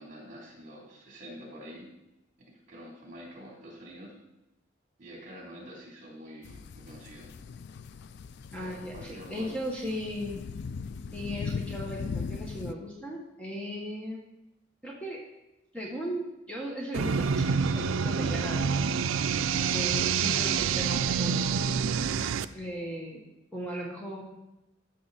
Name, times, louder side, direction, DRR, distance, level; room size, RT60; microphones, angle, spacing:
voice 1, 0.0-1.9 2.4-4.1 5.0-7.3 8.5-9.5, equal, 40° right, -2 dB, 3.3 m, -47 dB
sound 1, 6.4-12.7, left 5 dB, 55° left, 0.4 m, -39 dB
voice 2, 8.5-10.4 11.1-14.2 14.8-15.2 15.7-18.8 19.7-21.8 22.5-23.2 23.5-24.2, equal, 5° left, -3 dB, 1.3 m, -37 dB
sound 2, 16.9-22.4, right 6 dB, 80° right, 0.4 m, -27 dB
13.5 x 6.6 x 4.2 m, 0.93 s
head